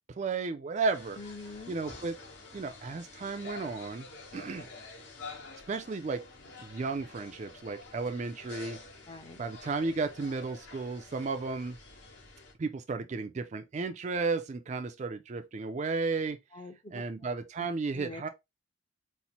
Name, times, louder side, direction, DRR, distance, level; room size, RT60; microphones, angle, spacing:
voice 1, 0.2-1.2 1.7-2.1 2.5-4.1 4.3-4.7 5.7-6.2 6.6-8.8 9.4-11.8 12.6-16.4 16.9-18.3, right 4 dB, 35° right, 0.3 m, -33 dB
sound 1, 0.9-12.5, left 3 dB, 75° left, 1.7 m, -48 dB
voice 2, 1.2-1.8 9.1-9.4 16.5-17.0 17.9-18.2, left 2 dB, 25° left, 0.5 m, -44 dB
4.2 x 2.0 x 4.2 m
head